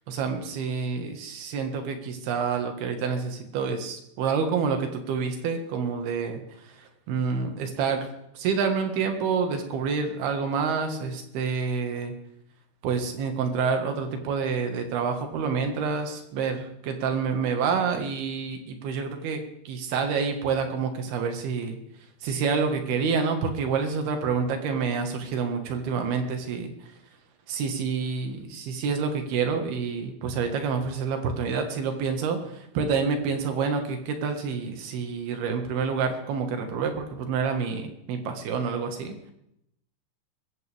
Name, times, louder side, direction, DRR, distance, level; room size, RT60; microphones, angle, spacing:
voice 1, 0.1-8.1 8.4-12.1 12.8-21.8 22.2-26.7 27.5-39.1, right 5 dB, 90° right, 5 dB, 3.7 m, -28 dB
22.5 x 15.0 x 3.5 m, 0.78 s
omnidirectional pair, 4.3 m